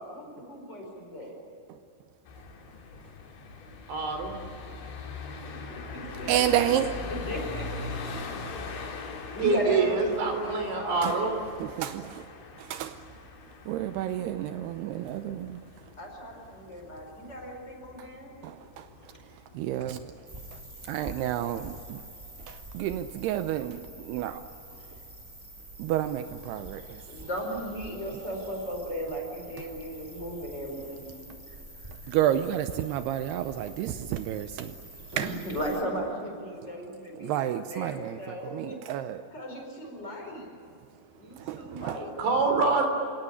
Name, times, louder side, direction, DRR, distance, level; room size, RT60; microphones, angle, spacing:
voice 1, 0.0-1.4 5.4-6.7 7.3-8.1 8.6-9.0 9.3-11.3 16.0-18.4 27.1-31.2 31.8-31.9 35.1-38.8 39.3-40.5 41.2-42.1, right 1 dB, 20° left, 5.0 m, -36 dB
sound 1, 2.3-20.6, left 4 dB, 65° left, 4.7 m, -42 dB
voice 2, 3.9-4.4 9.4-11.3 42.2-42.9, right 4 dB, 65° right, 5.8 m, -25 dB
voice 3, 6.3-7.0 11.0-11.2 11.6-12.3 12.6-13.1 13.7-15.7 18.0-18.1 18.4-20.6 20.9-22.0 22.4-24.5 25.8-27.0 32.1-34.8 35.1-35.4 37.2-39.3 41.4-42.0, right 11 dB, 85° right, 2.3 m, -31 dB
sound 2, 20.3-35.8, right 1 dB, 10° right, 2.6 m, -46 dB
30.0 x 17.5 x 9.8 m
omnidirectional pair, 5.6 m